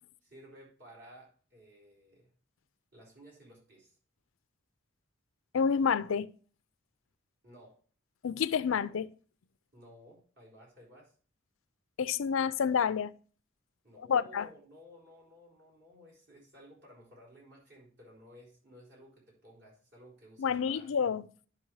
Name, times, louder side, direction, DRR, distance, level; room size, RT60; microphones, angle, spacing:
voice 1, 0.2-2.3 2.9-4.0 7.4-7.8 9.7-11.1 13.8-20.9, equal, 55° right, 4.1 m, -55 dB
voice 2, 5.5-6.3 8.2-9.1 12.0-13.1 14.1-14.5 20.4-21.2, left 6 dB, 80° left, 0.4 m, -28 dB
11.0 x 5.4 x 3.1 m
head